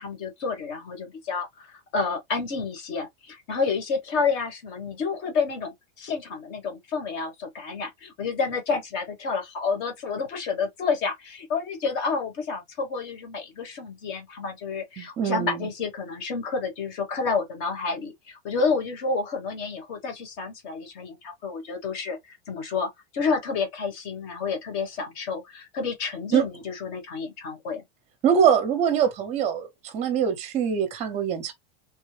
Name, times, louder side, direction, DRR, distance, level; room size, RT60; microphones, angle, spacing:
voice 1, 0.0-27.8, left 4 dB, 35° left, 1.2 m, -29 dB
voice 2, 15.0-15.7 26.3-26.5 28.2-31.5, right 8 dB, 20° right, 0.8 m, -23 dB
3.4 x 2.2 x 3.2 m
supercardioid pair, 175°, 31 cm